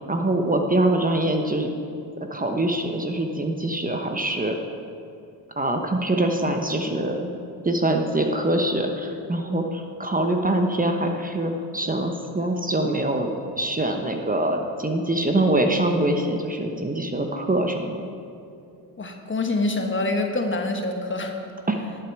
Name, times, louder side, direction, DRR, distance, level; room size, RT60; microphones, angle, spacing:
voice 1, 0.1-1.7 2.3-4.6 5.6-7.3 7.6-13.3 13.6-18.0 21.7-21.8, right 1 dB, 20° right, 4 dB, 1.0 m, -24 dB
voice 2, 19.0-21.3, left 2 dB, 30° left, 4 dB, 1.3 m, -25 dB
11.5 x 8.6 x 4.7 m, 2.5 s
supercardioid pair, 65°, 42 cm